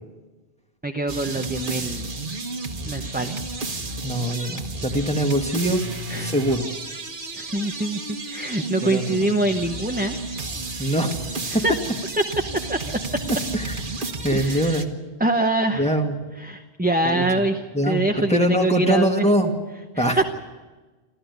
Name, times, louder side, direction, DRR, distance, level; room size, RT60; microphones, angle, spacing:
voice 1, 0.8-2.1 2.8-3.4 6.1-6.4 7.3-8.0 8.3-10.2 11.5-11.7 12.2-12.3 12.5-12.8 14.3-14.8 15.2-15.9 16.4-19.3 19.9-20.2, right 2 dB, 10° right, 5 dB, 0.9 m, -24 dB
sound 1, 1.1-14.8, right 2 dB, 50° right, 1.5 m, -32 dB
voice 2, 4.0-5.8 6.2-6.7 8.8-9.2 10.8-11.1 13.3-13.7 14.2-14.9 15.7-16.1 17.0-17.2 17.7-18.0 18.3-19.5 20.0-20.2, right 1 dB, 5° left, 3 dB, 2.1 m, -23 dB
25.5 x 14.5 x 9.5 m, 1.3 s
omnidirectional pair, 1.1 m